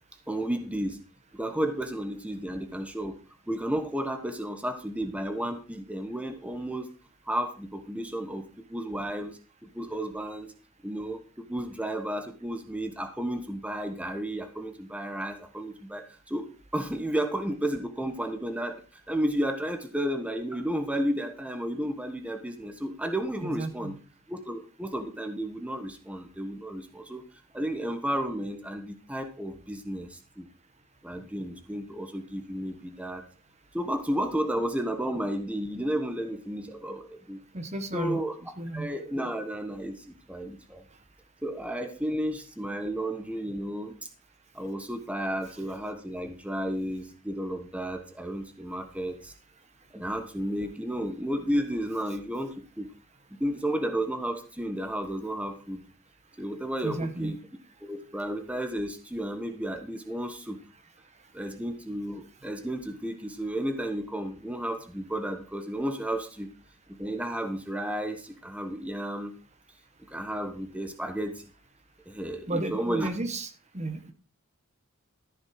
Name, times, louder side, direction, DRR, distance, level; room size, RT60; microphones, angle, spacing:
voice 1, 0.3-1.0 1.3-3.1 3.5-6.9 7.3-8.4 8.7-10.5 10.8-23.9 24.3-27.2 27.5-30.5 31.0-33.2 33.7-37.4 37.9-38.3 38.7-40.8 41.4-44.0 44.5-49.3 49.9-52.9 53.4-55.8 56.4-57.4 57.8-60.6 61.3-66.5 67.0-69.3 70.1-71.5 72.1-73.1, right 1 dB, 5° right, 6 dB, 1.2 m, -32 dB
voice 2, 23.4-23.9 37.5-38.2 38.6-38.9 56.8-57.4 72.5-74.1, right 2 dB, 30° right, 8 dB, 1.2 m, -33 dB
14.0 x 6.5 x 4.7 m, 0.36 s
head